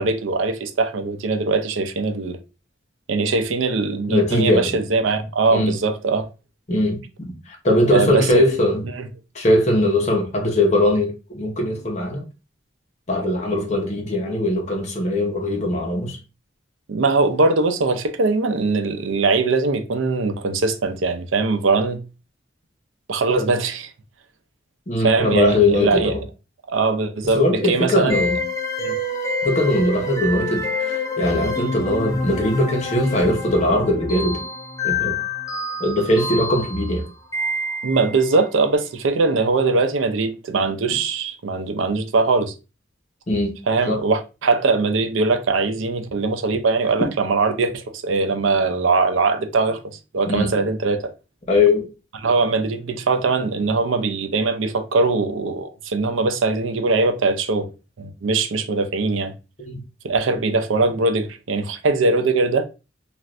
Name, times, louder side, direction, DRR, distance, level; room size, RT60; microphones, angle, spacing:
voice 1, 0.0-2.4 3.1-6.3 7.9-8.4 8.9-9.1 16.9-22.0 23.1-23.9 25.0-26.1 26.7-28.2 28.8-28.9 37.8-42.5 43.7-51.1 52.2-57.7 58.0-59.3 60.0-62.7, right 3 dB, 90° right, 0.5 m, -21 dB
voice 2, 4.1-4.7 5.5-5.8 6.7-8.8 9.3-12.2 13.1-16.2 24.9-26.2 27.3-28.4 29.4-34.4 34.8-35.2 35.8-37.0 43.3-43.5 43.9-44.0 50.3-50.5 51.5-51.9 59.6-59.8, left 1 dB, 35° left, 0.9 m, -20 dB
sound 1, 28.1-38.3, left 2 dB, 15° left, 0.4 m, -27 dB
3.2 x 2.5 x 2.4 m
head